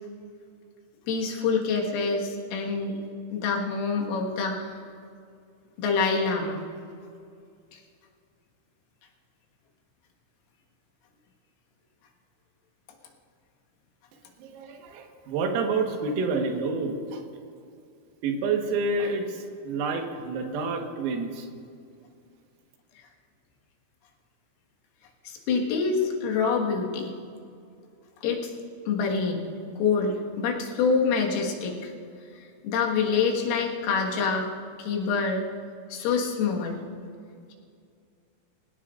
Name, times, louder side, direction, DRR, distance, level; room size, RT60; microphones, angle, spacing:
voice 1, 1.1-3.0 3.3-4.8 5.8-6.6 7.7-7.8 25.3-27.1 28.2-28.5 28.9-29.5 29.8-31.9 32.6-34.5 34.8-35.4 35.9-36.8, left 5 dB, 80° left, 0 dB, 4.3 m, -26 dB
voice 2, 14.4-17.2 18.2-21.5, right 3 dB, 90° right, 3 dB, 4.2 m, -28 dB
24.5 x 17.5 x 2.5 m, 2.3 s
omnidirectional pair, 6.0 m